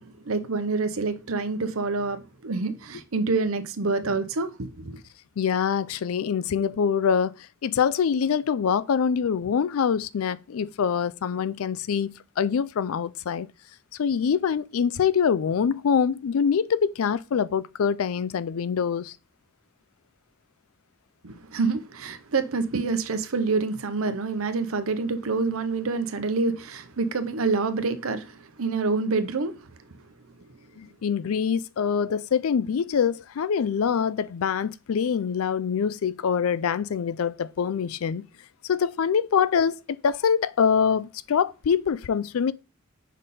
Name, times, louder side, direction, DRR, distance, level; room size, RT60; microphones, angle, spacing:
voice 1, 0.0-5.0 21.2-29.6, right 4 dB, 85° right, 0.8 m, -27 dB
voice 2, 5.4-7.4 7.6-13.5 14.0-19.1 30.8-38.2 38.6-42.5, left 7 dB, 90° left, 0.4 m, -24 dB
5.2 x 4.2 x 5.3 m
head